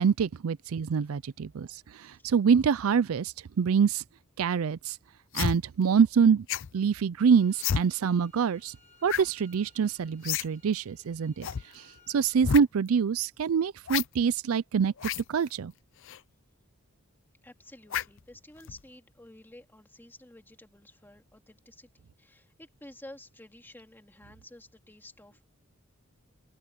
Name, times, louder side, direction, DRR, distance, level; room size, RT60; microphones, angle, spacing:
voice 1, 0.0-4.0 4.4-5.0 5.3-6.5 6.7-8.8 9.0-11.5 11.7-14.9 15.3-15.7, right 6 dB, 80° right, 0.4 m, -25 dB
sound 1, 5.3-5.6 6.5-6.7 7.6-7.8 9.1-9.3 9.5-9.6 10.2-10.5 10.7-10.8 11.4-11.6 12.4-12.6 13.9-14.1 15.0-15.2 16.0-16.2 17.9-18.2 18.6-18.8, left 8 dB, 65° left, 0.5 m, -30 dB
sound 2, 7.2-12.4, left 4 dB, 35° left, 4.4 m, -61 dB
voice 2, 17.4-25.5, left 1 dB, 10° left, 2.5 m, -51 dB
open air
head